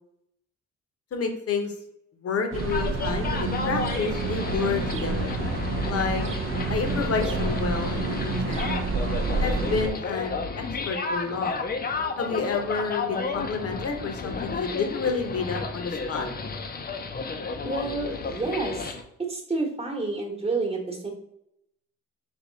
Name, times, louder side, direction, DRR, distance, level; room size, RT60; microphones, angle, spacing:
voice 1, 1.1-1.7 2.2-5.4 5.9-6.3 6.7-8.2 8.5-8.8 9.4-10.4 10.9-11.6 12.2-16.3, left 5 dB, 50° left, 4 dB, 0.9 m, -29 dB
sound 1, 2.5-9.9, right 4 dB, 45° right, 0.6 m, -29 dB
sound 2, 2.6-19.0, left 4 dB, 30° left, 0.6 m, -32 dB
voice 2, 17.6-18.9 19.3-21.1, right 3 dB, 20° right, 0 dB, 1.2 m, -29 dB
3.5 x 2.9 x 4.0 m, 0.79 s
cardioid pair, 90°, 30 cm